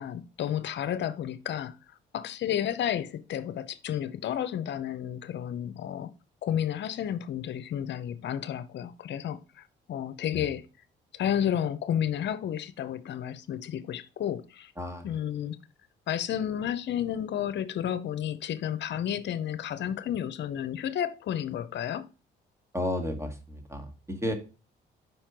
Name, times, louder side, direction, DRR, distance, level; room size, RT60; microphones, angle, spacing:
voice 1, 0.0-1.8 2.1-6.1 6.4-10.6 11.1-14.7 15.0-15.6 16.1-22.1, left 10 dB, 65° left, 0.7 m, -31 dB
voice 2, 22.7-24.3, left 1 dB, 15° right, 1.5 m, -32 dB
5.3 x 4.3 x 4.5 m
cardioid pair, 90°, 20 cm